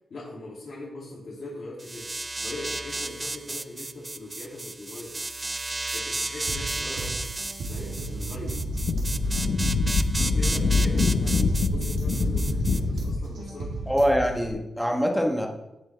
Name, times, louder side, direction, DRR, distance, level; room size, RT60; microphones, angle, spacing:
voice 1, 0.1-2.1 2.4-5.2 5.9-7.3 7.7-8.6 10.2-11.4 11.6-13.7, left 2 dB, 50° left, -6 dB, 2.7 m, -40 dB
sound 1, 1.8-12.8, right 2 dB, 15° right, 0.3 m, -33 dB
sound 2, 6.5-14.5, right 3 dB, 65° right, 2.7 m, -34 dB
Wind, 8.4-13.3, left 4 dB, 65° left, 1.1 m, -25 dB
voice 2, 13.9-15.5, equal, ahead, 1 dB, 1.3 m, -24 dB
17.0 x 7.8 x 3.4 m, 0.94 s
wide cardioid pair, 180°, 0 cm